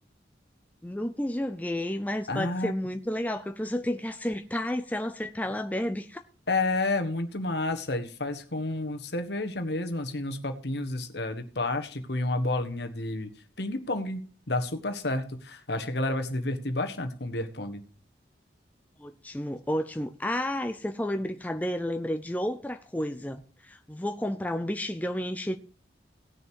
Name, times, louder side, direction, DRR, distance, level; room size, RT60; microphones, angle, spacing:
voice 1, 0.8-6.2 19.0-25.6, left 1 dB, 10° left, 0.5 m, -31 dB
voice 2, 2.3-2.7 6.5-13.3 13.6-14.2 14.5-17.8, left 2 dB, 70° left, 1.5 m, -30 dB
17.5 x 6.6 x 4.7 m
head